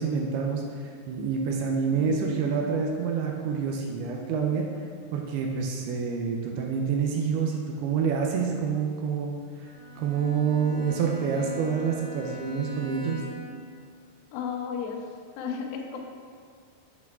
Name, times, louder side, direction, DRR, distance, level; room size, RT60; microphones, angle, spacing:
voice 1, 0.0-4.7 5.1-13.2, right 6 dB, 85° right, 1 dB, 2.5 m, -27 dB
Bowed string instrument, 9.6-13.6, left 3 dB, 55° left, 2.4 m, -42 dB
voice 2, 14.3-16.0, left 6 dB, 85° left, 1 dB, 2.7 m, -34 dB
8.1 x 4.6 x 3.6 m, 2.1 s
omnidirectional pair, 4.7 m